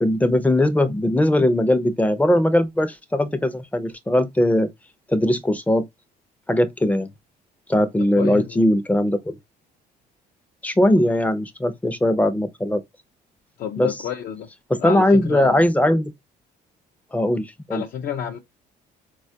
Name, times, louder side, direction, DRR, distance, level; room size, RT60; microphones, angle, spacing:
voice 1, 0.0-4.7 5.1-5.9 6.5-7.1 7.7-9.4 10.6-12.8 13.8-13.9 14.7-16.1 17.1-17.8, left 1 dB, 10° left, 0.5 m, -20 dB
voice 2, 8.1-8.6 13.6-14.5 14.8-15.6 17.7-18.4, left 9 dB, 60° left, 0.5 m, -30 dB
4.1 x 2.3 x 2.6 m
cardioid pair, 110°, 17 cm